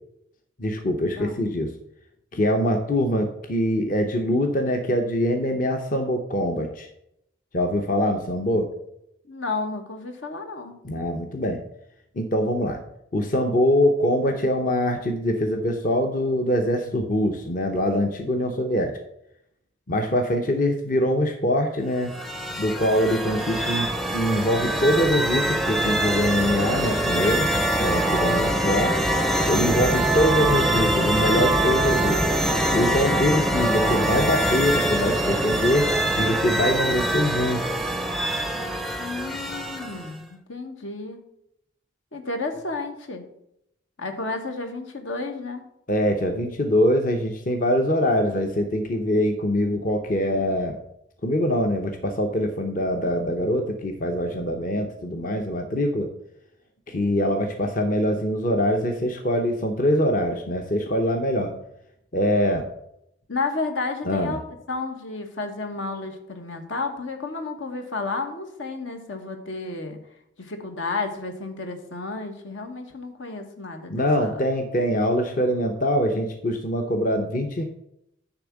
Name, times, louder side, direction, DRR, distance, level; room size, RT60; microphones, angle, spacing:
voice 1, 0.6-1.7 2.3-6.9 7.5-8.7 10.8-11.6 12.1-12.8 13.1-18.9 19.9-22.1 22.5-27.5 27.8-28.9 29.5-32.4 32.7-35.9 36.2-37.6 45.9-50.8 51.2-56.1 56.9-61.5 62.1-62.7 64.0-64.4 73.9-77.6, equal, 40° left, 4 dB, 0.8 m, -23 dB
voice 2, 9.3-10.8 39.0-41.2 42.1-43.2 44.0-45.6 63.3-64.4 64.7-70.0 70.4-74.4, left 3 dB, 75° left, 5 dB, 1.3 m, -32 dB
sound 1, 22.0-40.2, right 1 dB, ahead, 0.5 m, -24 dB
9.9 x 3.5 x 7.1 m, 0.78 s
head